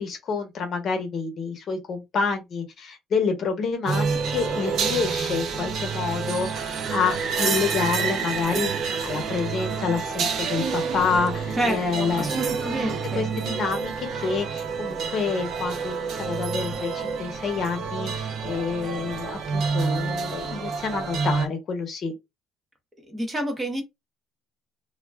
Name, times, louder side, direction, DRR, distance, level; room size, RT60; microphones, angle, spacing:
voice 1, 0.0-12.3 13.1-22.1, left 5 dB, 40° left, 0.8 m, -28 dB
sound 1, 3.9-21.5, right 5 dB, 50° right, 0.5 m, -28 dB
voice 2, 11.6-13.3 23.1-23.8, right 1 dB, 15° right, 0.8 m, -29 dB
2.3 x 2.2 x 3.2 m
cardioid pair, 150°, 0 cm